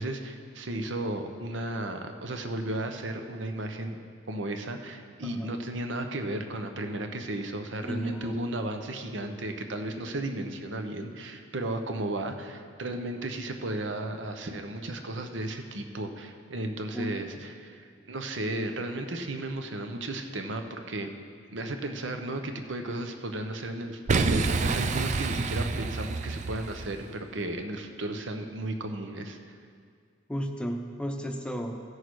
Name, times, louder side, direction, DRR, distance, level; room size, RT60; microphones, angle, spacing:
voice 1, 0.0-4.0 4.3-21.1 21.5-29.5, right 1 dB, 75° right, 6 dB, 0.9 m, -34 dB
voice 2, 5.2-5.5 7.8-8.4 16.9-17.4 30.3-31.8, equal, 5° left, 4 dB, 0.7 m, -34 dB
Boom, 24.1-27.1, right 4 dB, 40° right, 0.4 m, -28 dB
15.5 x 6.4 x 4.7 m, 2.1 s
head